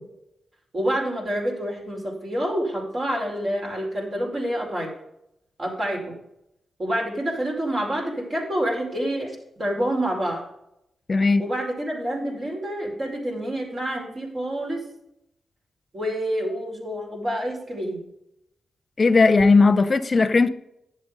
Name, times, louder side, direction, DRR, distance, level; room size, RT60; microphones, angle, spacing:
voice 1, 0.7-4.9 5.6-6.1 6.8-9.3 9.6-10.4 11.4-14.8 15.9-18.0, equal, 45° right, -1 dB, 5.0 m, -27 dB
voice 2, 11.1-11.4 19.0-20.5, left 3 dB, 40° left, 13 dB, 0.9 m, -17 dB
11.0 x 7.8 x 5.2 m, 0.81 s
cardioid pair, 85°, 0 cm